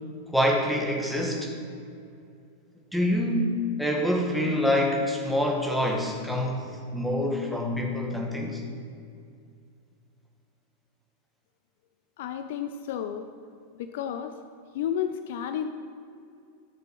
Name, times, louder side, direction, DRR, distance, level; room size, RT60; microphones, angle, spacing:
voice 1, 0.3-1.5 2.9-3.5 3.8-6.7 6.9-8.6, left 1 dB, ahead, 0 dB, 1.7 m, -26 dB
voice 2, 12.2-13.3 13.8-14.3 14.7-15.7, left 9 dB, 55° left, 8 dB, 0.5 m, -31 dB
12.0 x 6.8 x 5.8 m, 2.4 s
figure-of-eight pair, 90°, 0 cm